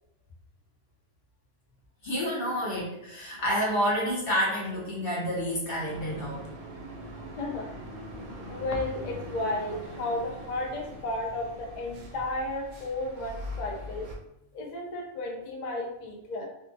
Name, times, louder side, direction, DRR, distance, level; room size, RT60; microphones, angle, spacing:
voice 1, 2.0-6.5, equal, 50° left, -5 dB, 0.7 m, -29 dB
sound 1, 5.8-14.2, equal, 80° right, 1.1 m, -42 dB
voice 2, 7.4-7.7 8.5-14.1 14.5-16.4, left 2 dB, 90° left, 0 dB, 0.3 m, -33 dB
2.6 x 2.2 x 2.5 m, 0.83 s
omnidirectional pair, 1.5 m